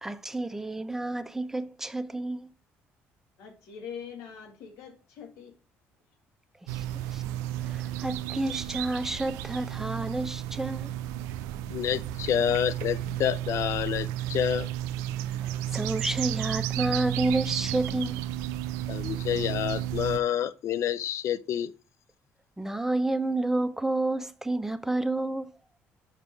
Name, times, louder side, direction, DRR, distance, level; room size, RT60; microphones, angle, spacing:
voice 1, 0.0-2.5 6.7-6.8 7.1-7.3 7.6-10.9 15.4-18.2 22.6-25.5, right 2 dB, 5° right, 0.7 m, -30 dB
voice 2, 3.4-5.5, left 7 dB, 80° left, 2.1 m, -43 dB
sound 1, 6.7-20.2, right 12 dB, 85° right, 0.4 m, -33 dB
voice 3, 11.7-14.7 18.9-21.7, left 10 dB, 65° left, 0.5 m, -28 dB
5.4 x 5.2 x 4.6 m
supercardioid pair, 70°, 5 cm